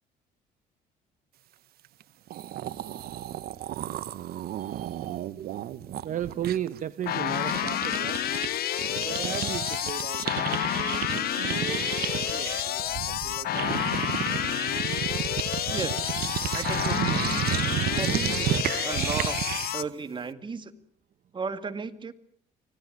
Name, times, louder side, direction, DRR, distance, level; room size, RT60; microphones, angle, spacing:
sound 1, 2.0-2.1 2.3-8.5 8.7-19.8, right 12 dB, 65° right, 1.1 m, -32 dB
voice 1, 4.4-8.2 9.0-13.7, right 10 dB, 50° right, 13 dB, 0.9 m, -37 dB
sound 2, 7.1-19.8, left 12 dB, 65° left, 1.3 m, -29 dB
voice 2, 15.7-16.0 16.5-17.5 18.0-19.4 19.7-20.7 21.3-22.1, right 4 dB, 30° right, 10 dB, 2.0 m, -35 dB
25.0 x 17.5 x 9.3 m, 0.63 s
cardioid pair, 110°, 17 cm